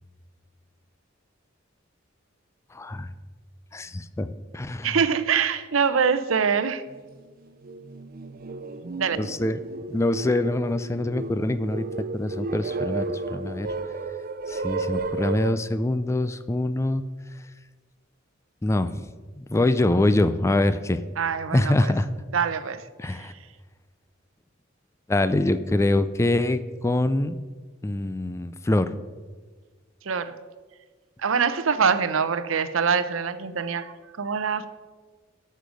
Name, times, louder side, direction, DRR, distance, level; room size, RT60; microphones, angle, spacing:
voice 1, 2.7-3.1 3.7-5.0 9.2-9.6 9.9-11.9 12.1-13.7 14.5-17.0 18.6-21.0 21.5-22.1 23.0-23.3 25.1-27.4 27.8-28.9, left 2 dB, 15° left, 13 dB, 0.3 m, -24 dB
voice 2, 4.8-6.8 9.0-9.2 21.2-21.9 22.3-23.3 30.0-30.3 31.2-34.7, right 6 dB, 90° right, 12 dB, 0.7 m, -24 dB
sound 1, 6.9-7.0 7.5-15.5, right 3 dB, 45° right, 0.5 m, -33 dB
12.5 x 6.6 x 5.1 m, 1.4 s
head